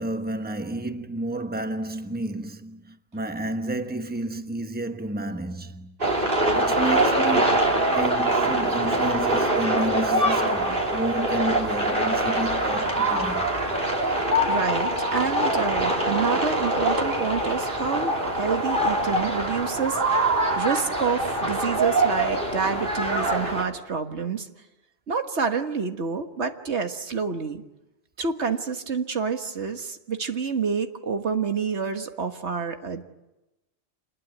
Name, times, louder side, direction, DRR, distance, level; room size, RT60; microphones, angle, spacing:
voice 1, 0.0-6.0 6.5-7.6 7.9-13.5 19.2-19.3, right 2 dB, 10° right, 1.1 m, -31 dB
sound 1, 6.0-23.6, right 1 dB, 55° right, 3.6 m, -24 dB
voice 2, 14.4-24.5 25.1-27.6 28.2-33.0, right 5 dB, 85° right, 1.8 m, -28 dB
27.5 x 20.5 x 9.4 m
omnidirectional pair, 1.1 m